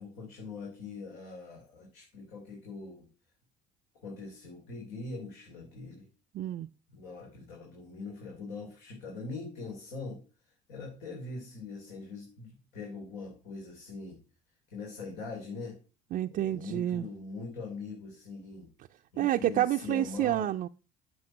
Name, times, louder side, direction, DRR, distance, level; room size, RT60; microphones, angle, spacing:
voice 1, 0.0-3.1 4.0-6.1 6.9-10.2 10.7-14.2 14.7-15.8 16.2-18.7 19.1-20.5, left 3 dB, 80° left, 3.2 m, -42 dB
voice 2, 6.3-6.7 16.1-17.1 19.2-20.7, right 13 dB, 50° right, 0.4 m, -29 dB
7.8 x 5.5 x 6.4 m
cardioid pair, 100°, 17 cm